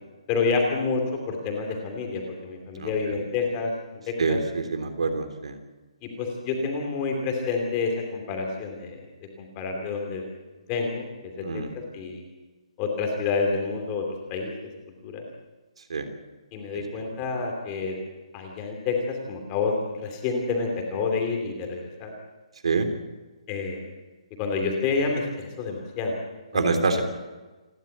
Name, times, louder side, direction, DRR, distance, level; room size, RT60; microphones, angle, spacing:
voice 1, 0.3-3.7 4.3-4.4 6.0-9.0 9.4-10.2 10.7-11.6 11.9-12.2 12.8-14.0 14.3-14.5 15.0-15.2 16.5-18.0 18.3-22.1 23.5-23.8 24.4-26.2 26.5-27.0, left 4 dB, 15° left, 2 dB, 2.8 m, -28 dB
voice 2, 2.7-3.2 4.2-5.6 11.4-11.7 15.9-16.1 16.7-17.0 22.6-22.9 26.5-27.0, right 4 dB, 60° right, 7 dB, 3.3 m, -26 dB
28.5 x 12.0 x 9.2 m, 1.2 s
hypercardioid pair, 180°, 4 cm